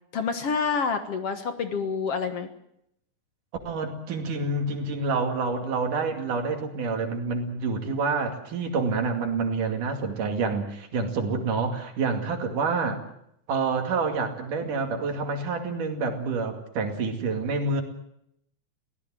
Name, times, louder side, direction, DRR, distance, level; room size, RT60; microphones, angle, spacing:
voice 1, 0.1-2.5, left 5 dB, 55° left, 8 dB, 2.2 m, -28 dB
voice 2, 3.7-13.0 13.5-17.8, right 4 dB, 80° right, 4 dB, 4.0 m, -28 dB
23.5 x 17.0 x 7.6 m, 0.75 s
omnidirectional pair, 3.6 m